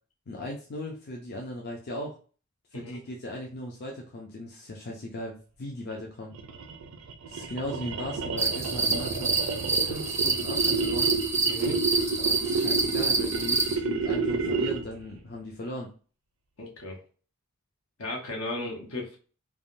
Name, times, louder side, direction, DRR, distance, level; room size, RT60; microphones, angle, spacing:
voice 1, 0.3-2.2 2.7-6.3 7.3-9.3 9.7-11.2 12.2-15.9, left 1 dB, 50° left, -1 dB, 0.5 m, -38 dB
sound 1, 6.3-15.0, right 4 dB, 80° right, 0.5 m, -30 dB
sound 2, 8.4-13.8, right 3 dB, 15° right, 0.4 m, -27 dB
voice 2, 11.5-11.8 16.6-17.0 18.0-19.2, left 2 dB, 75° left, 0 dB, 0.9 m, -35 dB
3.4 x 2.1 x 2.5 m, 0.38 s
head